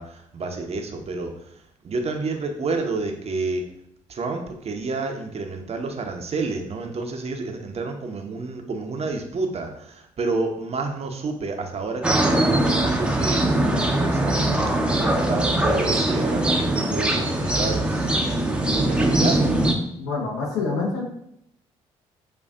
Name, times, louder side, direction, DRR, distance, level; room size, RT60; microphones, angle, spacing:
voice 1, 0.0-1.3 1.8-3.6 4.1-13.6 14.0-19.5, right 3 dB, 40° right, 4 dB, 0.7 m, -30 dB
sound 1, 12.0-19.7, right 1 dB, 5° right, 0.7 m, -21 dB
voice 2, 20.0-21.0, left 4 dB, 70° left, -2 dB, 1.1 m, -26 dB
6.5 x 2.5 x 2.5 m, 0.74 s
figure-of-eight pair, 45°, 17 cm